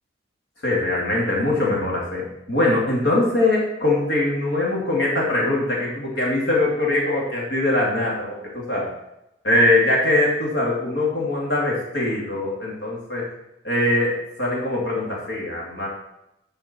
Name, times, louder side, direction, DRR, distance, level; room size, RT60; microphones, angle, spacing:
voice 1, 0.6-8.9 9.4-13.2 13.6-15.9, left 2 dB, 70° left, -3 dB, 2.8 m, -22 dB
11.5 x 5.5 x 4.5 m, 0.87 s
head